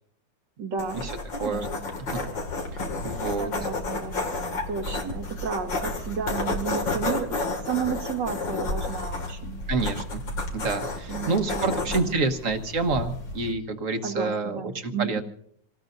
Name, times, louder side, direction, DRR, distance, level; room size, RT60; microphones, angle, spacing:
voice 1, 0.6-1.0 1.3-1.9 3.4-7.4 7.6-9.6 11.1-12.1 14.0-15.2, right 6 dB, 70° right, 2 dB, 1.9 m, -32 dB
sound 1, 0.8-13.5, left 2 dB, 90° left, 3.0 m, -31 dB
voice 2, 2.7-3.5 9.7-10.2 10.5-15.2, right 3 dB, 50° right, 7 dB, 1.5 m, -28 dB
28.0 x 18.5 x 2.6 m, 0.67 s
omnidirectional pair, 2.0 m